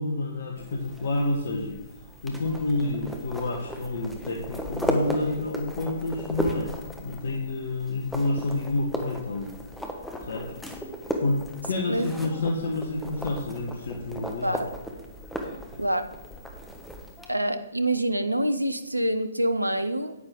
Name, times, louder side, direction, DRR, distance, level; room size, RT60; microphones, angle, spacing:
voice 1, 0.0-1.8 2.2-6.7 7.0-9.6 10.3-10.5 11.2-14.6, left 2 dB, 55° left, 1 dB, 1.3 m, -29 dB
sound 1, 0.6-17.3, equal, ahead, 1.2 m, -36 dB
voice 2, 17.3-20.1, right 1 dB, 90° right, 10 dB, 0.8 m, -26 dB
10.0 x 9.1 x 3.8 m, 1.1 s
figure-of-eight pair, 120°, 0 cm